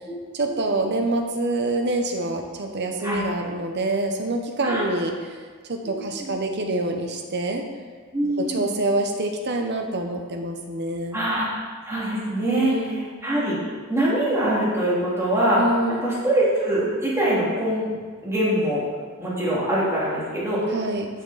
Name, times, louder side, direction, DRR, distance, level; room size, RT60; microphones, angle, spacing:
voice 1, 0.3-5.1 5.7-7.6 8.4-11.2 12.4-13.0 15.6-16.1 20.7-21.1, right 2 dB, 50° right, 3 dB, 0.9 m, -26 dB
voice 2, 5.8-6.3 8.1-8.7 11.1-11.5 11.8-13.6 13.9-15.6 16.0-18.8 19.2-20.7, right 1 dB, 10° right, -8 dB, 2.6 m, -24 dB
10.0 x 6.0 x 4.1 m, 1.5 s
head